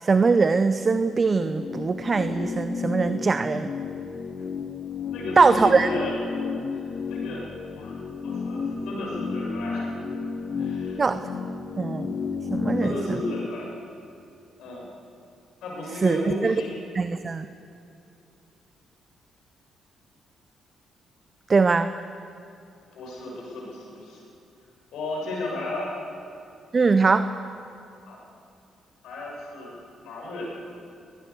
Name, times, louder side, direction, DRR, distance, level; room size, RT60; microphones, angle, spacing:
voice 1, 0.0-3.7 5.4-5.9 11.0-11.2 11.8-12.2 12.5-13.2 16.0-16.5 16.9-17.4 21.5-21.9 26.7-27.3, right 4 dB, 40° right, 11 dB, 0.8 m, -21 dB
sound 1, 1.0-13.5, left 4 dB, 50° left, 1.3 m, -32 dB
voice 2, 5.1-6.2 6.7-7.4 7.7-10.0 10.6-11.0 12.7-13.7 14.6-14.9 15.6-16.8 22.9-24.2 24.9-25.9 28.0-28.2 29.0-29.7 30.0-30.5, left 1 dB, 75° left, -2 dB, 6.9 m, -33 dB
23.0 x 18.5 x 7.1 m, 2.6 s
hypercardioid pair, 50°, 0 cm